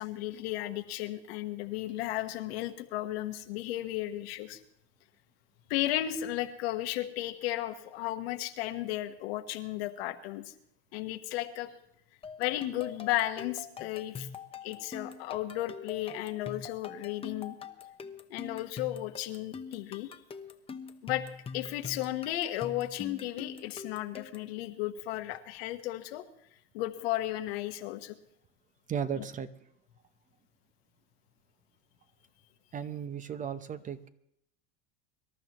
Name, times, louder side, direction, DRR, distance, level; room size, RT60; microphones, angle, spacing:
voice 1, 0.0-4.6 5.7-10.5 10.9-11.7 12.4-14.3 14.6-17.6 18.3-20.1 21.0-21.3 21.5-26.2 26.7-28.2 29.2-29.3, left 14 dB, 80° left, 7 dB, 1.4 m, -34 dB
sound 1, 12.2-24.5, left 5 dB, 20° left, 0.9 m, -44 dB
voice 2, 28.9-29.5 32.7-34.1, right 8 dB, 25° right, 12 dB, 0.8 m, -35 dB
24.5 x 12.5 x 3.0 m, 0.74 s
supercardioid pair, 130°, 31 cm